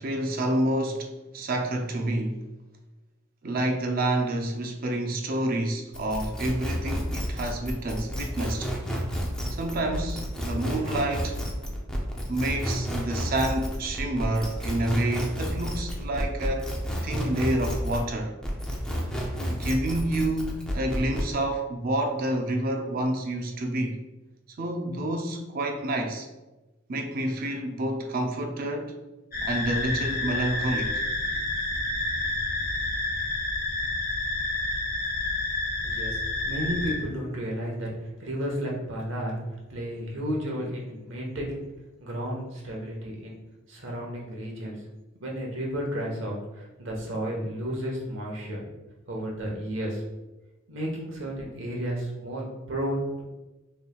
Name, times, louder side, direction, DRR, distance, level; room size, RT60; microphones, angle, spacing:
voice 1, 0.0-2.5 3.4-8.7 9.6-11.4 12.2-16.7 17.0-18.4 19.5-24.0 24.6-26.3 26.9-28.9 29.4-31.0, right 1 dB, 45° right, 0.5 m, -28 dB
sound 1, 5.9-18.1 18.4-21.3, equal, 5° left, 0.5 m, -31 dB
sound 2, 29.3-36.9, left 2 dB, 45° left, 1.0 m, -29 dB
voice 2, 35.8-36.2 36.4-37.9 38.2-39.4 39.7-41.6 42.0-43.3 43.7-44.7 45.2-48.6 49.1-50.0 50.7-53.2, equal, 70° right, 1.1 m, -32 dB
5.4 x 3.2 x 2.3 m
head